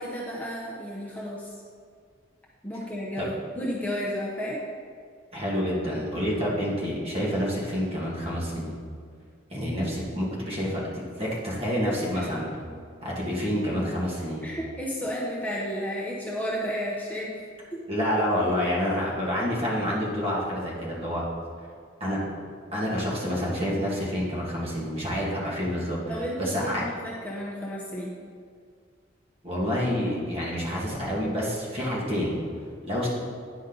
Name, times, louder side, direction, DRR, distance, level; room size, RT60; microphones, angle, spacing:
voice 1, 0.0-1.5 2.6-4.6 12.1-12.5 14.4-17.8 26.1-28.1, equal, 10° left, -5 dB, 0.8 m, -32 dB
voice 2, 5.3-8.8 9.5-12.5 13.0-14.5 17.9-21.2 22.0-22.2 22.7-26.0 26.4-26.8 29.4-32.4 32.8-33.1, equal, 30° right, -5 dB, 1.7 m, -28 dB
9.7 x 5.3 x 3.9 m, 2.1 s
head